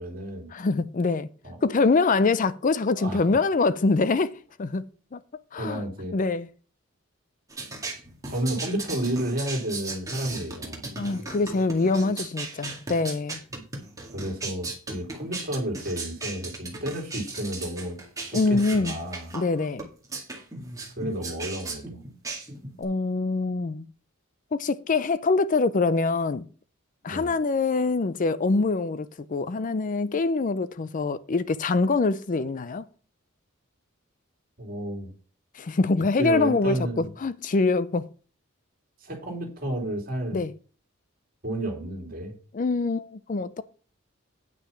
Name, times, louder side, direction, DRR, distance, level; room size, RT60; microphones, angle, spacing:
voice 1, 0.0-0.5 1.4-1.6 2.9-3.3 5.6-6.2 8.3-10.8 13.5-13.6 14.1-18.0 18.3-19.3 21.0-22.0 27.0-27.3 34.6-35.1 36.2-37.1 39.0-40.4 41.4-42.4, right 1 dB, 45° right, 3.0 m, -31 dB
voice 2, 0.5-1.3 1.6-4.8 5.1-5.2 5.5-5.8 6.1-6.5 11.0-13.4 18.3-19.0 19.3-19.9 22.8-23.9 24.5-26.5 27.0-32.8 35.5-38.1 40.3-40.5 42.5-43.6, left 3 dB, 40° left, 0.5 m, -24 dB
sound 1, 7.5-22.8, right 3 dB, 15° right, 2.1 m, -37 dB
9.3 x 5.9 x 5.7 m
head